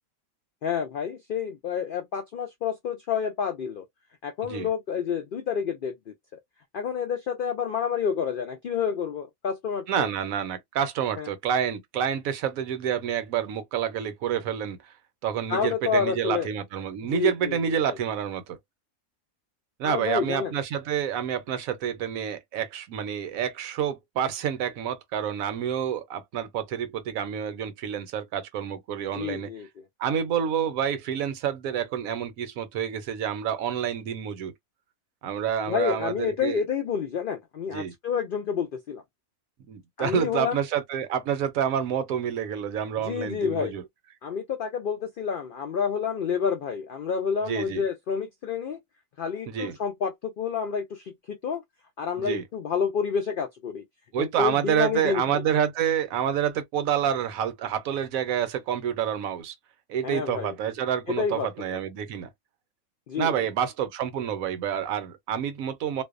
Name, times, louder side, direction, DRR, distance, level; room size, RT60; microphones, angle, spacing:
voice 1, 0.6-3.8 4.2-6.1 6.7-10.1 11.2-11.3 15.5-16.5 17.0-18.0 19.8-20.5 29.1-29.8 35.7-39.0 40.0-40.6 43.0-43.8 44.2-48.8 49.2-51.6 52.0-53.8 54.2-55.4 60.0-60.5 61.1-61.8 63.1-63.5, left 7 dB, 80° left, 0.4 m, -29 dB
voice 2, 9.9-14.8 15.2-18.6 19.8-29.5 30.0-34.5 35.2-36.6 37.7-37.9 39.7-43.8 47.4-47.8 49.5-49.8 52.2-52.4 54.1-59.5 59.9-62.3 63.2-66.0, right 8 dB, 75° right, 1.0 m, -28 dB
2.6 x 2.1 x 2.4 m
omnidirectional pair, 1.5 m